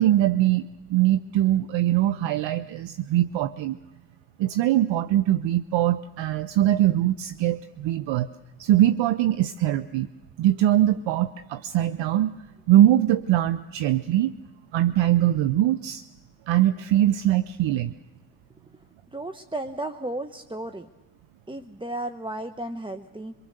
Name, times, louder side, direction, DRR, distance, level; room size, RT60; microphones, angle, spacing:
voice 1, 0.0-3.8 4.4-8.3 8.6-10.1 10.4-12.3 12.7-14.3 14.7-16.0 16.5-17.9, right 13 dB, 70° right, 13 dB, 0.7 m, -22 dB
voice 2, 19.1-20.9 21.5-23.3, right 1 dB, 10° right, 8 dB, 0.9 m, -34 dB
24.0 x 22.5 x 6.6 m, 1.1 s
supercardioid pair, 45°, 46 cm